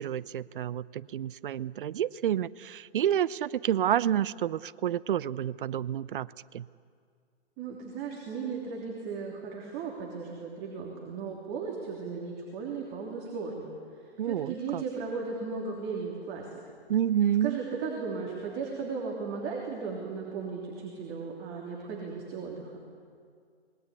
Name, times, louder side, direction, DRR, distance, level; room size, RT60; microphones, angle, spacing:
voice 1, 0.0-6.7 14.2-14.8 16.9-17.6, right 10 dB, 50° right, 20 dB, 0.6 m, -29 dB
voice 2, 7.6-13.7 13.9-16.5 17.4-22.8, right 5 dB, 25° right, -1 dB, 3.2 m, -36 dB
26.5 x 21.0 x 8.3 m, 2.1 s
hypercardioid pair, 140°, 33 cm